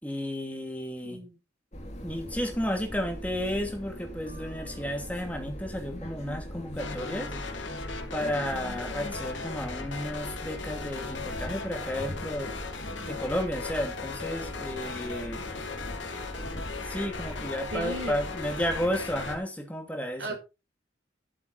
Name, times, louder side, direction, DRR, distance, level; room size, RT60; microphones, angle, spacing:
voice 1, 0.0-1.2 2.0-7.3 8.1-12.5 12.9-15.4 16.8-20.4, equal, 10° left, 3 dB, 2.7 m, -32 dB
voice 2, 1.0-1.4 16.9-17.0 17.7-18.2 20.2-20.4, right 2 dB, 85° right, 3 dB, 5.5 m, -36 dB
sound 1, 1.7-19.4, equal, 35° left, 2.8 m, -40 dB
sound 2, 6.8-19.4, left 4 dB, 80° left, 2.9 m, -38 dB
12.0 x 8.4 x 4.3 m, 0.28 s
head